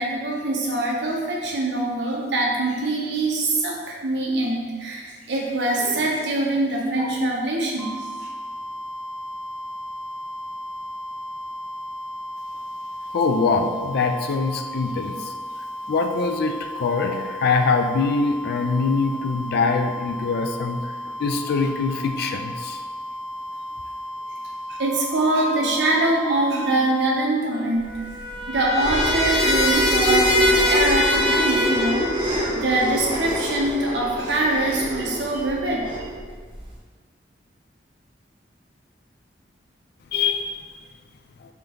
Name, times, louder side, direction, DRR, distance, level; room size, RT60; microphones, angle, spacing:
voice 1, 0.0-7.9 24.8-28.0 28.5-32.1 32.5-36.1, right 2 dB, 70° right, -2 dB, 0.8 m, -23 dB
sound 1, 7.8-27.3, equal, 15° left, 0.6 m, -34 dB
voice 2, 13.1-15.3 15.9-20.8 21.2-22.8 40.1-40.5, left 4 dB, 60° left, 6 dB, 0.3 m, -23 dB
Trumpet, 27.5-32.2, left 1 dB, 80° left, 0.8 m, -24 dB
sound 2, 27.9-36.7, equal, 30° right, 0.7 m, -25 dB
3.3 x 2.9 x 3.8 m, 1.5 s
head